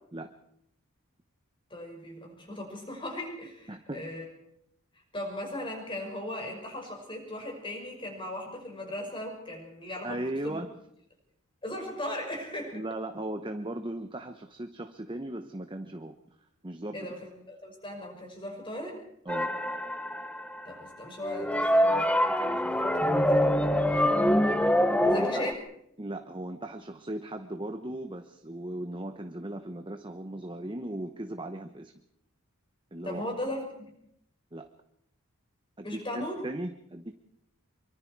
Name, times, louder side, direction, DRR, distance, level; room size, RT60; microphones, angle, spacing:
voice 1, 1.7-4.3 5.1-10.6 11.6-12.8 16.9-19.0 20.6-24.5 25.1-25.6 33.0-33.7 35.8-36.4, left 1 dB, 25° left, 2 dB, 6.1 m, -38 dB
voice 2, 3.7-4.1 10.0-10.7 12.7-16.1 16.6-17.1 19.2-19.5 24.9-25.5 26.0-31.9 32.9-33.2 34.5-34.7 35.8-37.1, right 1 dB, 20° right, 7 dB, 0.9 m, -37 dB
sound 1, 19.3-20.6 21.2-25.5, equal, 5° left, 0.9 m, -25 dB
25.5 x 24.0 x 4.7 m, 0.74 s
head